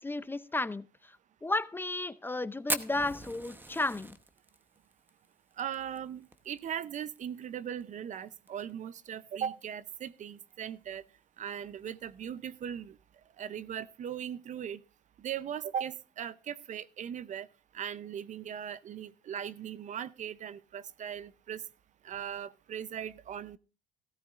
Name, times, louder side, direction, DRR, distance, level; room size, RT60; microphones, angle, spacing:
voice 1, 0.0-4.2, left 2 dB, 10° left, 0.6 m, -34 dB
Fire, 2.7-7.2 7.4-7.5 7.8-7.9 8.3-8.7 9.2-9.3 10.4-10.5, right 2 dB, 10° right, 1.0 m, -38 dB
voice 2, 5.6-11.0 11.4-13.0 13.4-14.8 15.2-17.5 17.7-21.6 22.0-23.6, right 9 dB, 45° right, 0.6 m, -39 dB
16.0 x 14.0 x 2.4 m
cardioid pair, 110°, 17 cm